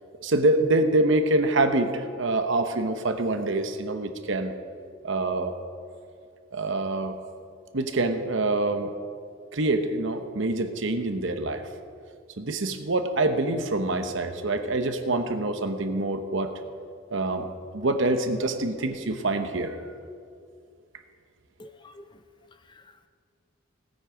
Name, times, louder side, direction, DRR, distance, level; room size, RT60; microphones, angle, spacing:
voice 1, 0.2-4.5 5.0-5.5 6.5-7.2 7.7-8.9 9.5-11.6 12.4-16.5 17.1-19.7, right 2 dB, 60° right, 8 dB, 0.9 m, -25 dB
voice 2, 21.6-22.2 22.5-23.1, left 1 dB, 20° left, 9 dB, 0.5 m, -50 dB
17.5 x 8.6 x 5.0 m, 2.3 s
head